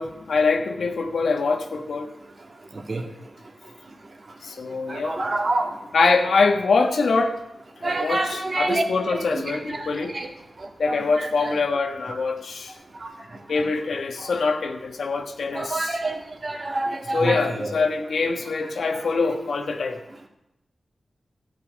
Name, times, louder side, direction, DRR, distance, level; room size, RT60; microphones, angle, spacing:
voice 1, 0.0-2.1 4.4-5.2 5.9-7.4 7.8-10.1 10.8-12.7 13.5-16.0 17.1-20.0, left 4 dB, 80° left, 5 dB, 1.3 m, -24 dB
voice 2, 4.9-5.8 7.8-10.3 10.8-11.6 13.0-13.1 15.5-17.8 18.9-19.0, right 2 dB, 50° right, 2 dB, 2.2 m, -28 dB
13.5 x 5.9 x 9.0 m, 0.87 s
cardioid pair, 45°, 0 cm